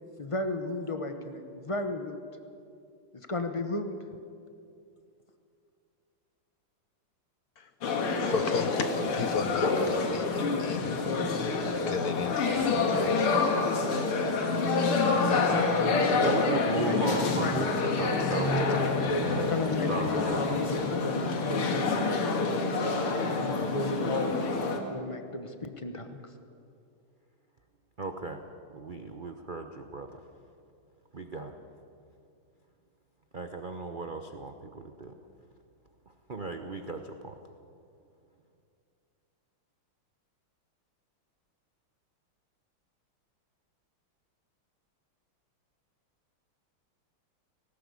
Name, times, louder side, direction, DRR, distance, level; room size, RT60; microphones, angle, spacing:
voice 1, 0.2-2.2 3.1-4.0 15.3-17.4 17.7-17.9 19.1-22.5 23.4-24.4 24.9-26.2, left 2 dB, 30° left, 7 dB, 0.5 m, -35 dB
sound 1, 7.8-24.8, left 3 dB, 85° left, 2.6 m, -27 dB
voice 2, 8.2-10.9 11.7-13.3, left 5 dB, 55° left, 8 dB, 1.2 m, -34 dB
voice 3, 16.2-20.9 28.0-28.4 28.7-30.2 31.1-31.6 33.3-35.2 36.3-37.4, right 3 dB, 70° right, 6 dB, 0.4 m, -36 dB
18.5 x 18.0 x 8.5 m, 2.5 s
omnidirectional pair, 2.4 m